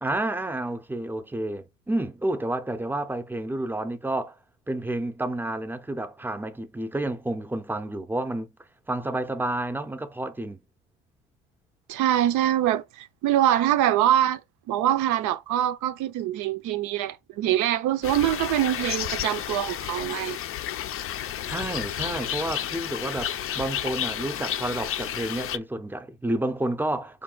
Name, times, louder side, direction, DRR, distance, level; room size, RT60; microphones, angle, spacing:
voice 1, 0.0-4.4 4.7-8.5 8.9-10.6 21.5-27.2, right 1 dB, 5° right, 0.6 m, -30 dB
voice 2, 11.9-14.4 14.7-20.4, right 12 dB, 70° right, 0.6 m, -24 dB
sound 1, 18.0-25.6, left 10 dB, 45° left, 0.5 m, -31 dB
5.0 x 2.3 x 3.8 m
supercardioid pair, 90°, 31 cm